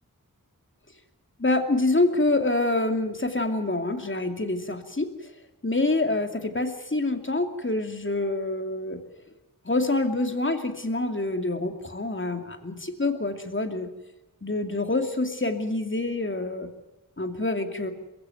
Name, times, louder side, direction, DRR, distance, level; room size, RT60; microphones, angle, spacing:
voice 1, 1.4-5.3 5.6-9.0 9.6-13.9 14.4-16.7 17.2-17.9, left 2 dB, 35° left, 6 dB, 2.6 m, -26 dB
22.0 x 15.5 x 9.2 m, 0.98 s
wide cardioid pair, 40°, 35 cm